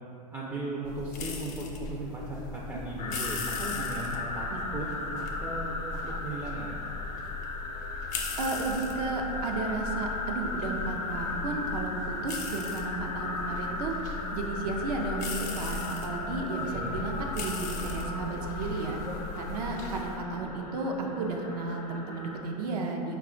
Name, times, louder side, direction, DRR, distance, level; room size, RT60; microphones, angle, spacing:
voice 1, 0.3-4.9 5.1-5.7 6.2-6.8 16.6-17.1, right 1 dB, 15° right, -4 dB, 0.4 m, -37 dB
sound 1, 0.8-20.2, left 4 dB, 40° left, 0.5 m, -39 dB
sound 2, 3.0-22.4, left 3 dB, 90° left, 0.5 m, -37 dB
voice 2, 8.4-23.2, right 3 dB, 75° right, 1 dB, 0.5 m, -33 dB
4.1 x 2.3 x 3.7 m, 3.0 s
hypercardioid pair, 110°, 20 cm